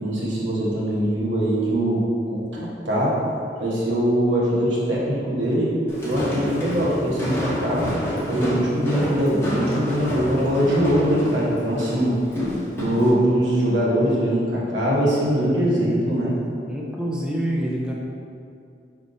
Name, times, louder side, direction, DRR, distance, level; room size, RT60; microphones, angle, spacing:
voice 1, 0.0-3.2 3.6-5.7 6.0-7.9 8.3-12.1 12.8-16.3, equal, 85° right, -6 dB, 1.1 m, -22 dB
Walk footsteps, 5.9-13.1, equal, 15° left, 0.8 m, -28 dB
voice 2, 16.7-17.9, right 1 dB, 5° right, -3 dB, 0.3 m, -26 dB
5.0 x 3.4 x 2.6 m, 2.4 s
head